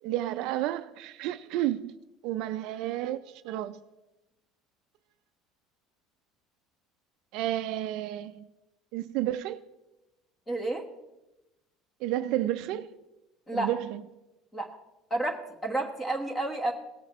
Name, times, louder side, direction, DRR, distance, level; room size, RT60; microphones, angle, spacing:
voice 1, 0.0-1.9 2.2-3.8 7.3-8.5 8.9-9.6 12.0-12.9 13.5-14.0, right 13 dB, 55° right, 0.4 m, -31 dB
voice 2, 10.5-10.8 13.5-13.7 14.5-14.7 15.1-16.7, right 2 dB, 10° left, 1.3 m, -30 dB
17.5 x 8.6 x 3.1 m
cardioid pair, 175°, 0 cm